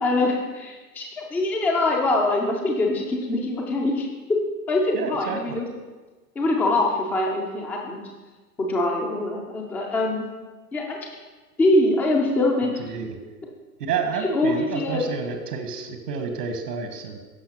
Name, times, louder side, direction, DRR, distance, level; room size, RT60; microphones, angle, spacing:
voice 1, 0.0-4.1 4.7-5.7 6.4-8.0 8.6-10.2 10.7-11.0 11.6-12.7 14.3-15.0, left 2 dB, 5° left, 0 dB, 0.3 m, -23 dB
voice 2, 4.9-5.6 12.8-13.2 13.8-17.2, right 5 dB, 70° right, 6 dB, 1.4 m, -30 dB
15.0 x 5.8 x 2.9 m, 1.3 s
hypercardioid pair, 105°, 49 cm